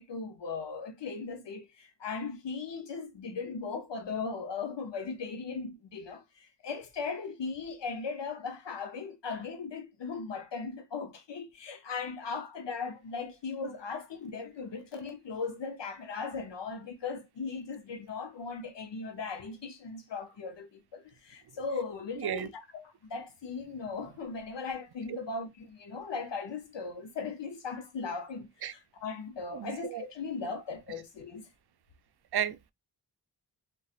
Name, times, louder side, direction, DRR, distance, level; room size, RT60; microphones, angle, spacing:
voice 1, 0.0-31.5, left 4 dB, 85° left, 0.7 m, -38 dB
voice 2, 22.2-22.5 28.6-28.7 29.5-30.0 32.3-32.7, right 9 dB, 65° right, 0.5 m, -33 dB
4.1 x 2.3 x 2.3 m
wide cardioid pair, 85°, 42 cm